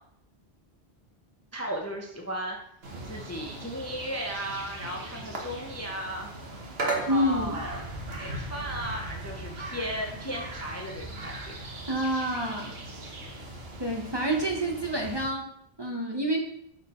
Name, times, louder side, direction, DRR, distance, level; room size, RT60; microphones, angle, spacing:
voice 1, 1.5-2.6 3.0-6.3 6.8-7.8 8.2-11.5, equal, 20° left, 0 dB, 0.6 m, -35 dB
sound 1, 2.8-15.3, right 2 dB, 70° right, 1.3 m, -38 dB
voice 2, 7.1-7.6 11.9-12.7 13.8-15.5 15.8-16.4, right 1 dB, 25° right, 1 dB, 0.8 m, -28 dB
6.4 x 3.9 x 4.2 m, 0.71 s
omnidirectional pair, 1.1 m